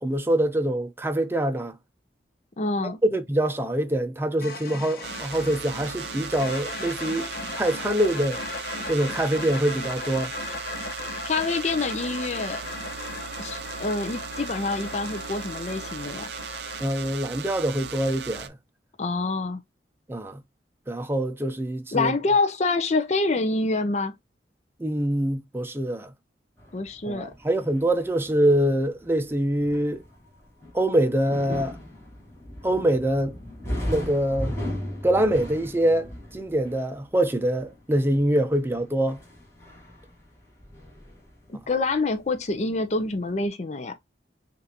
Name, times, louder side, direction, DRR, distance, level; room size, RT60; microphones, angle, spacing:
voice 1, 0.0-1.8 2.8-8.4 8.9-10.3 16.8-18.6 20.1-20.4 20.9-22.1 24.8-26.1 27.1-30.0 30.7-31.8 32.6-33.4 33.8-34.6 35.0-39.2, right 1 dB, 15° right, 0.6 m, -24 dB
voice 2, 2.6-3.0 11.2-12.6 13.4-16.3 19.0-19.6 21.9-24.1 26.7-27.3 41.5-44.0, left 3 dB, 40° left, 0.5 m, -26 dB
sound 1, 4.4-16.8, left 3 dB, 55° left, 1.1 m, -37 dB
sound 2, 5.0-18.5, right 6 dB, 65° right, 0.5 m, -37 dB
sound 3, 26.6-42.5 42.7-43.4, left 1 dB, 15° left, 1.9 m, -37 dB
6.5 x 2.6 x 2.8 m
head